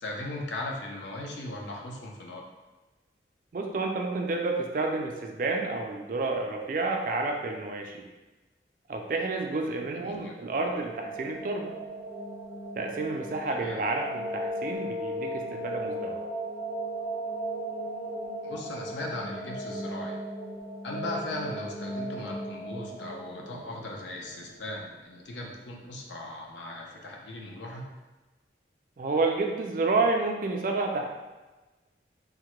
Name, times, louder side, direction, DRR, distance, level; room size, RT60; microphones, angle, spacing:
voice 1, 0.0-2.4 9.9-10.4 13.5-13.8 18.4-20.2 20.8-27.8, left 2 dB, 85° left, 0 dB, 0.6 m, -38 dB
voice 2, 3.5-8.0 8.9-11.8 12.8-16.2 29.0-31.1, right 3 dB, 50° right, 2 dB, 0.3 m, -30 dB
sound 1, 10.3-25.2, right 1 dB, 55° left, 1.4 m, -37 dB
3.5 x 2.1 x 3.0 m, 1.2 s
head